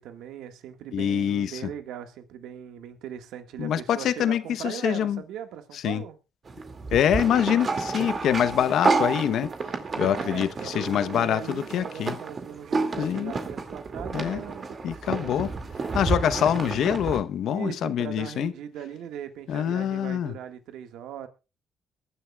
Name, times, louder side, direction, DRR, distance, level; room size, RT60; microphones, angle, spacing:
voice 1, 0.0-6.2 10.0-15.2 17.5-21.3, right 10 dB, 85° right, 1.7 m, -39 dB
voice 2, 0.9-1.6 3.6-5.2 5.8-6.0 6.9-9.5 10.0-12.2 13.0-13.3 14.1-14.4 14.8-15.5 15.9-18.5 19.5-20.3, left 9 dB, 75° left, 0.9 m, -25 dB
sound 1, 6.5-17.2, right 4 dB, 40° right, 2.3 m, -30 dB
22.5 x 11.0 x 2.4 m
cardioid pair, 90°, 0 cm